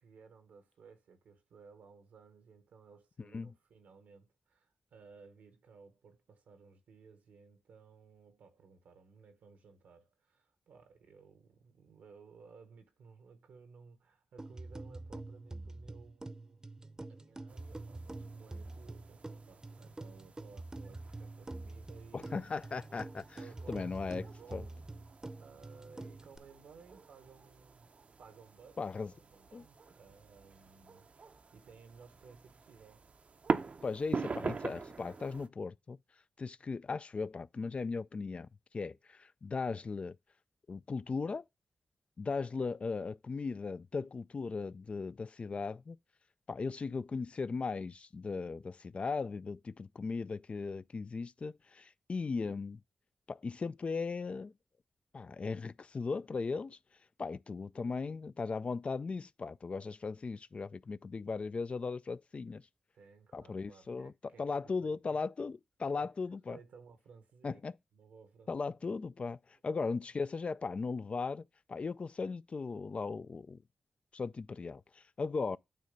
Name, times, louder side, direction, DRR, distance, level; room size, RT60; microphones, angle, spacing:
voice 1, 0.0-16.6 17.1-22.7 23.4-24.9 25.2-31.1 31.5-33.1 62.9-65.2 65.9-66.1 66.5-67.6 67.9-68.5, right 5 dB, 85° right, 1.2 m, -58 dB
sound 1, 14.4-26.4, right 2 dB, 25° right, 0.7 m, -46 dB
sound 2, 17.5-35.5, right 4 dB, 55° right, 0.6 m, -44 dB
voice 2, 22.1-23.4 23.7-24.3 24.5-24.6 28.8-29.1 29.5-29.6 33.8-36.0 36.4-38.5 38.7-40.2 40.7-41.4 42.2-46.0 46.5-52.8 53.3-54.5 55.1-56.8 57.2-62.6 63.3-64.1 64.4-66.6 67.4-67.7 68.5-69.4 69.6-71.4 71.7-73.6 74.1-75.6, left 4 dB, 50° left, 0.3 m, -37 dB
9.2 x 3.2 x 5.2 m
supercardioid pair, 40°, 3 cm